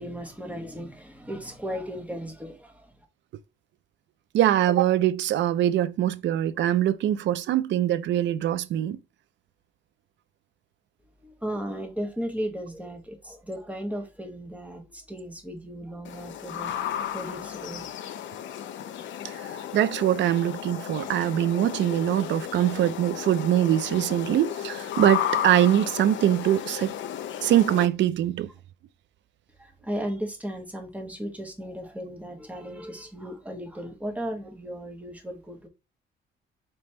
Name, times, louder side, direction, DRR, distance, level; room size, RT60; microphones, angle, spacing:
voice 1, 0.0-2.9 11.2-17.9 29.6-35.7, equal, 5° right, 1.2 m, -36 dB
voice 2, 4.3-9.0 19.2-19.3 19.7-26.9 27.4-28.5, right 12 dB, 65° right, 0.4 m, -23 dB
sound 1, 16.0-27.9, left 10 dB, 70° left, 0.6 m, -34 dB
3.3 x 2.9 x 4.3 m
cardioid pair, 90°, 20 cm